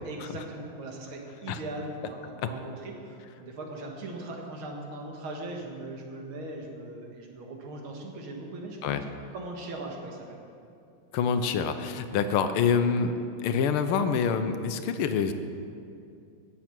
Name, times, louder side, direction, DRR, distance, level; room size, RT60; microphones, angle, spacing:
voice 1, 0.1-10.4, right 2 dB, 75° right, 0 dB, 2.4 m, -39 dB
voice 2, 11.1-15.3, left 6 dB, 90° left, 9 dB, 1.6 m, -26 dB
16.5 x 7.2 x 6.0 m, 2.5 s
omnidirectional pair, 2.3 m